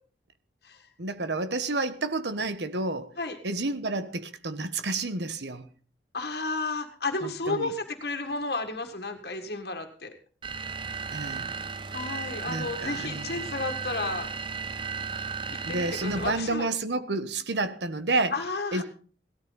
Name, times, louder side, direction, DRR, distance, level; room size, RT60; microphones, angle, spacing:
voice 1, 1.0-3.1 3.4-5.7 7.2-7.7 11.1-11.5 12.5-13.5 15.5-18.3 18.7-18.8, right 2 dB, 85° right, 11 dB, 1.3 m, -30 dB
voice 2, 6.1-10.1 11.9-14.3 15.7-16.7 18.3-18.8, left 3 dB, 70° left, 5 dB, 1.7 m, -32 dB
sound 1, 10.4-16.6, right 5 dB, 30° right, 0.6 m, -35 dB
17.0 x 13.0 x 4.0 m, 0.41 s
head